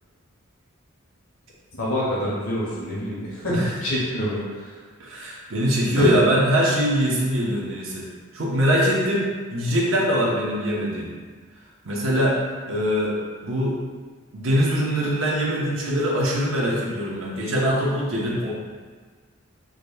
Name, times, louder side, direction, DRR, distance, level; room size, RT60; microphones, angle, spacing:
voice 1, 1.8-4.4 6.0-6.1, equal, 85° left, -7 dB, 1.3 m, -26 dB
voice 2, 5.0-8.1 8.3-11.1 11.8-12.4 12.7-13.8 14.3-18.5, equal, 70° right, -4 dB, 0.8 m, -22 dB
4.9 x 2.8 x 2.2 m, 1.5 s
head